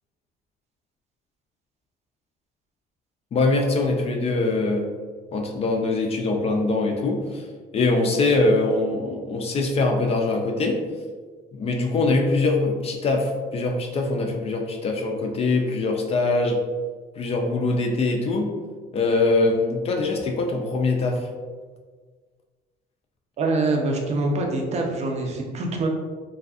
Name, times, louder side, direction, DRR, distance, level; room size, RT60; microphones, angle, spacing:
voice 1, 3.3-4.9 5.3-7.5 7.7-10.8 11.5-16.6 17.2-18.5 18.9-21.3, left 3 dB, 35° left, 2 dB, 0.4 m, -23 dB
voice 2, 23.4-25.9, right 2 dB, 40° right, 1 dB, 0.5 m, -24 dB
2.5 x 2.3 x 2.4 m, 1.5 s
cardioid pair, 110°, 17 cm